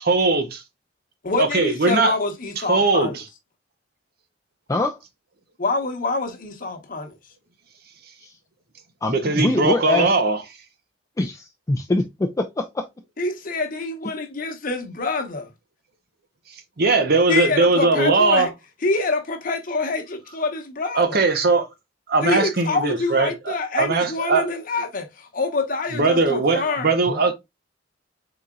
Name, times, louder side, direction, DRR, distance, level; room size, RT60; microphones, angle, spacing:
voice 1, 0.1-0.6 1.4-2.1 2.7-3.2 9.1-10.4 16.8-18.5 20.9-21.7 22.1-24.5 25.9-27.3, right 3 dB, 55° right, 0.7 m, -20 dB
voice 2, 1.2-3.2 5.6-7.1 13.2-15.5 17.3-18.5 18.8-21.2 22.2-26.9, left 3 dB, 45° left, 1.0 m, -26 dB
voice 3, 9.0-10.1 11.2-12.8 27.1-27.2, left 2 dB, 20° left, 0.4 m, -24 dB
4.2 x 3.9 x 2.3 m
head